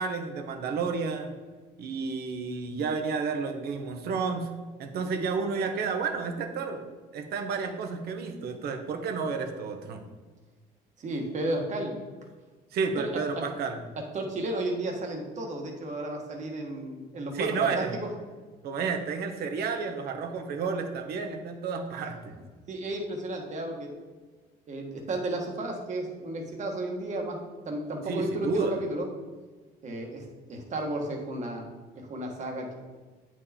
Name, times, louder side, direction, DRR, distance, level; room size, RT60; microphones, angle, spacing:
voice 1, 0.0-1.4 1.8-4.5 4.8-6.9 7.1-10.0 12.7-13.8 17.3-18.0 18.6-22.3 28.1-28.8, right 5 dB, 70° right, 6 dB, 1.1 m, -31 dB
voice 2, 11.0-11.9 13.0-13.4 14.1-18.1 22.7-23.9 24.7-27.4 27.6-29.1 29.8-30.2 30.5-31.7 31.9-32.7, right 1 dB, 45° right, 1 dB, 1.6 m, -33 dB
8.8 x 4.7 x 4.4 m, 1.3 s
cardioid pair, 110°, 17 cm